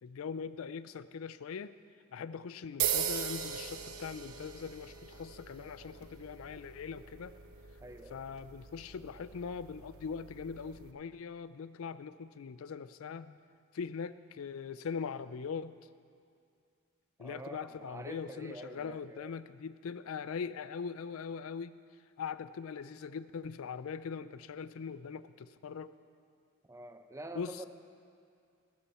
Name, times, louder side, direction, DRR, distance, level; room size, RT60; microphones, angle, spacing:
voice 1, 0.0-1.8 2.1-7.3 8.1-13.4 13.7-15.8 17.2-21.8 22.2-25.9 27.4-27.6, left 6 dB, 75° left, 15 dB, 0.4 m, -41 dB
sound 1, 2.8-10.9, right 8 dB, 85° right, 0.9 m, -40 dB
voice 2, 7.8-8.2 17.2-19.4 26.6-27.7, right 1 dB, 15° right, 8 dB, 0.6 m, -47 dB
15.5 x 12.5 x 4.3 m, 2.3 s
head